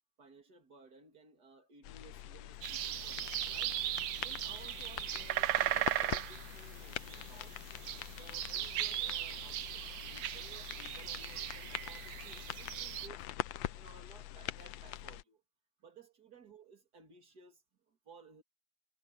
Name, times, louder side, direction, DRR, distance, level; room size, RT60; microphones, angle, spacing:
voice 1, 0.2-3.8 4.2-7.6 8.0-13.3 13.7-15.4 15.8-18.4, right 4 dB, 55° right, 3.5 m, -58 dB
sound 1, 1.8-15.2, left 14 dB, 80° left, 1.4 m, -44 dB
sound 2, 2.6-13.1, right 13 dB, 90° right, 1.5 m, -38 dB
omnidirectional pair, 2.1 m